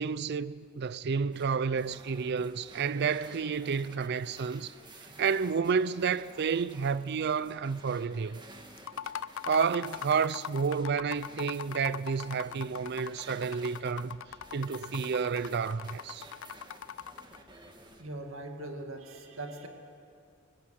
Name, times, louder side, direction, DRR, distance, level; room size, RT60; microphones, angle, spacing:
voice 1, 0.0-4.7 5.0-8.4 9.5-14.2 14.5-16.3, right 6 dB, 55° right, 0.5 m, -30 dB
sound 1, 1.3-18.0, right 2 dB, 20° right, 1.8 m, -52 dB
sound 2, 8.8-17.4, left 8 dB, 65° left, 0.4 m, -41 dB
voice 2, 18.0-19.7, right 2 dB, 75° right, 2.2 m, -41 dB
23.5 x 18.0 x 7.8 m
head